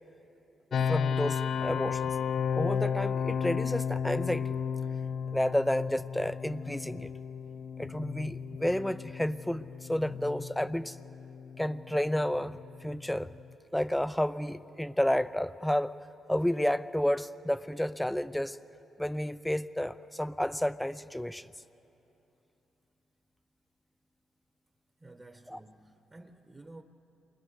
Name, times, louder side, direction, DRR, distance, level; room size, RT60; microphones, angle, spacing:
sound 1, 0.7-13.5, left 7 dB, 60° left, 0.5 m, -34 dB
voice 1, 0.9-2.2 2.5-4.6 5.3-7.1 7.8-11.0 11.6-13.3 13.7-15.9 16.3-18.6 19.0-21.5 25.5-25.6, left 1 dB, 5° left, 14 dB, 0.6 m, -31 dB
voice 2, 25.0-26.8, right 2 dB, 25° right, 5 dB, 1.3 m, -52 dB
28.5 x 24.0 x 6.6 m, 2.9 s
cardioid pair, 90°, 0 cm